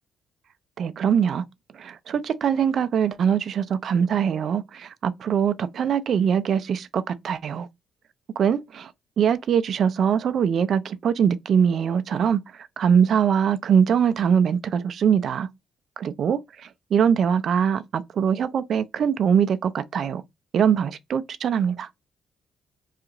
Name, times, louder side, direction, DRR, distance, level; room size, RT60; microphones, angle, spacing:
voice 1, 0.8-1.5 1.7-7.7 8.4-8.9 9.2-15.5 16.0-20.2 20.5-21.9, right 7 dB, 60° right, 0.4 m, -22 dB
2.8 x 2.4 x 3.6 m
cardioid pair, 90°, 0 cm